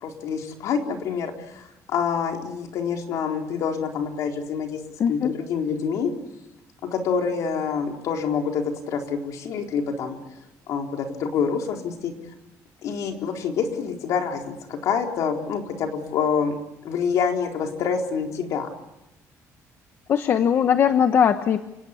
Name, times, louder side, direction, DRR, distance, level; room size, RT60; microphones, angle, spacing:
voice 1, 0.0-4.8 5.1-6.1 6.9-10.2 10.7-12.1 12.8-16.5 16.8-18.7, left 6 dB, 65° left, 3 dB, 4.0 m, -26 dB
voice 2, 5.0-5.3 20.1-21.6, left 8 dB, 45° left, 9 dB, 1.0 m, -20 dB
29.0 x 18.0 x 8.5 m, 0.95 s
cardioid pair, 165°, 6 cm